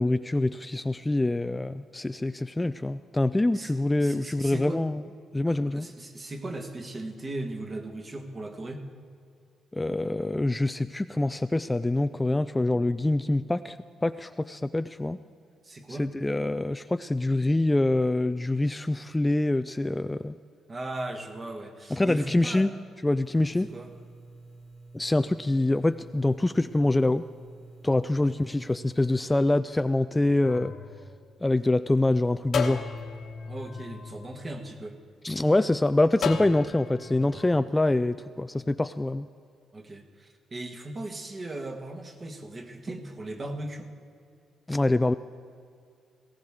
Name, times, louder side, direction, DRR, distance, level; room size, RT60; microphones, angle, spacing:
voice 1, 0.0-5.0 5.3-5.9 9.7-13.8 14.0-15.2 15.9-20.4 21.9-22.7 23.0-23.7 24.9-27.3 27.8-30.7 31.4-32.9 35.2-39.3 44.7-45.1, left 2 dB, 15° left, 11 dB, 0.3 m, -25 dB
voice 2, 4.0-4.8 5.5-8.8 15.6-16.1 20.7-22.7 23.7-23.9 28.2-28.3 33.4-35.0 39.7-43.9, right 2 dB, 30° right, 4 dB, 1.5 m, -38 dB
sound 1, 23.2-29.4, right 3 dB, 90° right, 4.0 m, -50 dB
sound 2, 30.4-31.9 32.5-35.1 36.2-37.6, left 6 dB, 65° left, 1.2 m, -35 dB
19.0 x 16.5 x 3.7 m, 2.4 s
cardioid pair, 90°, 0 cm